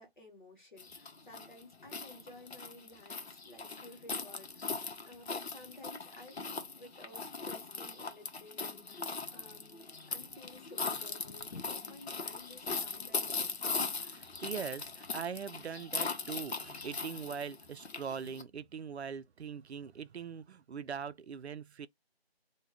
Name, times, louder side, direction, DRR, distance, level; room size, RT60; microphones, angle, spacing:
voice 1, 0.0-13.6, left 1 dB, 50° left, 1.0 m, -55 dB
sound 1, 0.8-18.4, left 4 dB, 80° left, 0.7 m, -39 dB
voice 2, 14.0-21.9, right 7 dB, 85° right, 0.5 m, -41 dB
2.4 x 2.2 x 3.3 m
figure-of-eight pair, 180°, 32 cm